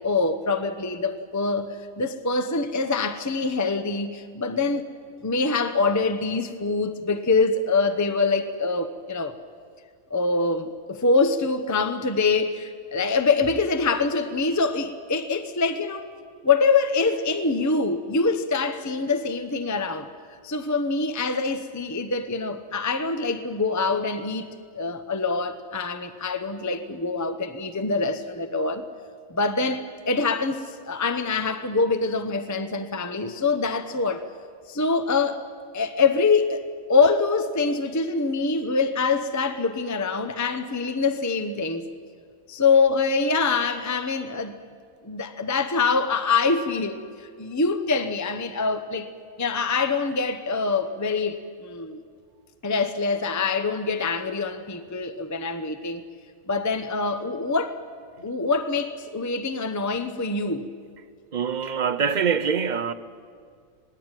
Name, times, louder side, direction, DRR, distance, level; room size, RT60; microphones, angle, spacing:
voice 1, 0.0-4.9 5.2-9.3 10.1-16.1 16.4-20.1 20.4-24.5 24.7-28.8 29.3-34.2 34.7-35.4 35.7-36.6 36.9-41.9 42.5-44.6 45.0-49.1 49.4-52.0 52.6-56.0 56.5-57.8 58.2-60.7, left 4 dB, 15° left, 0.8 m, -24 dB
voice 2, 61.3-62.9, right 6 dB, 40° right, 0.7 m, -24 dB
26.0 x 19.0 x 9.1 m
omnidirectional pair, 1.5 m